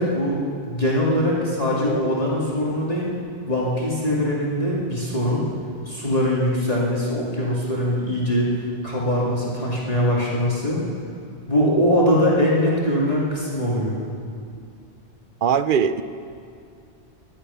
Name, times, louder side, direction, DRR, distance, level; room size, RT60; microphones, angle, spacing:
voice 1, 0.0-3.1 3.5-5.4 5.9-10.8 11.5-14.0, equal, 35° left, -6 dB, 2.4 m, -22 dB
voice 2, 15.4-16.0, right 7 dB, 60° right, 12 dB, 0.7 m, -20 dB
24.0 x 10.0 x 5.7 m, 2.4 s
omnidirectional pair, 1.1 m